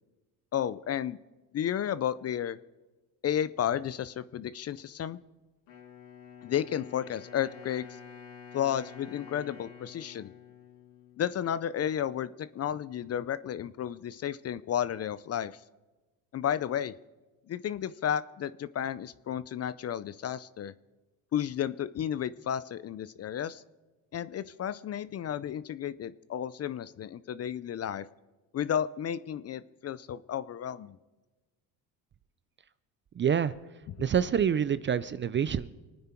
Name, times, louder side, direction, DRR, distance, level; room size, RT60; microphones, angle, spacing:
voice 1, 0.5-1.2 1.5-2.6 3.2-5.2 6.4-8.0 8.5-10.3 11.2-15.6 16.3-16.9 17.5-20.7 21.3-23.6 24.1-28.1 28.5-31.0, left 9 dB, 35° left, 17 dB, 0.5 m, -32 dB
Wind instrument woodwind instrument, 5.7-11.6, left 7 dB, 75° left, 3.6 m, -49 dB
voice 2, 33.2-33.5 34.0-35.7, right 8 dB, 25° right, 16 dB, 0.4 m, -26 dB
25.0 x 9.6 x 4.4 m, 1.2 s
supercardioid pair, 95°, 44 cm